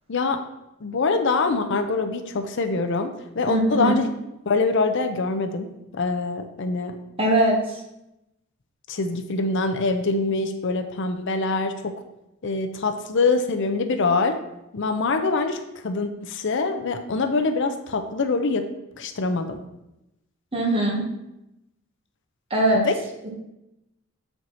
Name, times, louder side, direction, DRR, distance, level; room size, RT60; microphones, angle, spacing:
voice 1, 0.1-0.4 0.8-4.1 4.5-7.0 8.9-11.9 12.4-14.4 14.7-18.6 19.0-19.6 22.7-22.9, left 3 dB, 60° left, 7 dB, 0.6 m, -24 dB
voice 2, 3.5-4.0 7.2-7.6 20.5-21.0 22.5-22.8 23.2-23.3, right 1 dB, 25° right, -1 dB, 1.5 m, -21 dB
7.6 x 4.5 x 4.1 m, 0.89 s
head